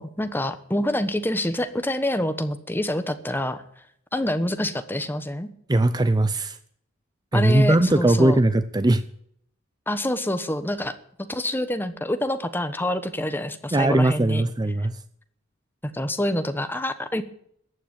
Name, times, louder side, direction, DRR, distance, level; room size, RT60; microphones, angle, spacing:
voice 1, 0.0-3.6 4.1-5.5 7.3-8.4 9.9-14.4 15.9-17.2, left 1 dB, 10° left, 10 dB, 1.1 m, -26 dB
voice 2, 5.7-6.6 7.3-9.0 13.7-14.9, right 1 dB, 20° right, 12 dB, 0.6 m, -20 dB
14.5 x 9.2 x 9.1 m, 0.69 s
head